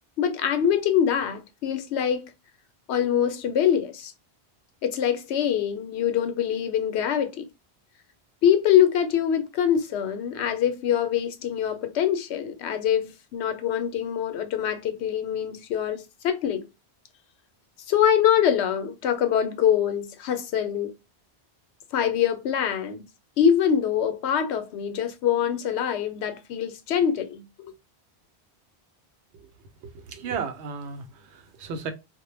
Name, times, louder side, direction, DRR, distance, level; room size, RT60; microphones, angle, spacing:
voice 1, 0.2-2.3 2.9-4.1 4.8-7.5 8.4-16.7 17.9-20.9 21.9-23.1 23.4-27.7, left 9 dB, 85° left, 0.8 m, -24 dB
voice 2, 29.8-31.9, right 5 dB, 85° right, 0.9 m, -34 dB
2.1 x 2.1 x 3.0 m
omnidirectional pair, 1.1 m